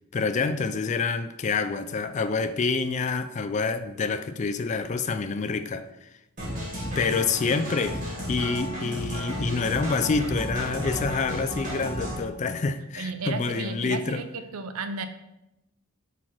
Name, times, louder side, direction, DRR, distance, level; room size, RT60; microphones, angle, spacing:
voice 1, 0.1-6.1 7.0-8.0 8.3-14.2, left 4 dB, 35° left, 10 dB, 0.3 m, -27 dB
sound 1, 6.4-12.2, equal, 35° right, 2.1 m, -33 dB
voice 2, 6.9-7.2 7.5-7.6 8.8-9.0 13.0-15.1, right 3 dB, 85° right, 9 dB, 0.6 m, -34 dB
5.8 x 4.2 x 4.5 m, 0.90 s
head